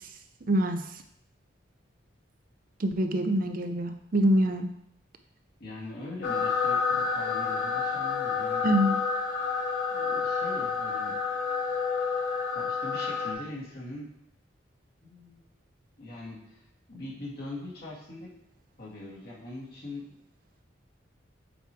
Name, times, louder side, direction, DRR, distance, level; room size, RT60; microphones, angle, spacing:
voice 1, 0.5-0.8 2.8-4.7 8.6-9.0, equal, 45° right, 7 dB, 0.5 m, -25 dB
voice 2, 5.6-8.7 9.9-11.2 12.5-14.1 15.0-15.4 16.0-16.6 16.9-18.3 18.8-20.2, left 2 dB, 55° left, -6 dB, 2.4 m, -42 dB
sound 1, 6.2-13.3, left 5 dB, 90° left, 1.2 m, -29 dB
8.1 x 3.1 x 4.5 m, 0.74 s
head